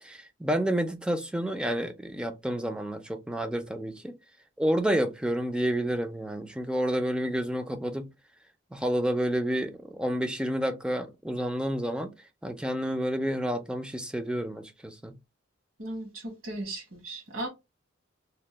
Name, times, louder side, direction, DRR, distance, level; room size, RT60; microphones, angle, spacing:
voice 1, 0.0-4.2 4.6-8.1 8.7-12.1 12.4-15.2, right 1 dB, 5° right, 0.4 m, -29 dB
voice 2, 15.8-17.5, right 2 dB, 65° right, 1.4 m, -36 dB
2.9 x 2.1 x 3.2 m
head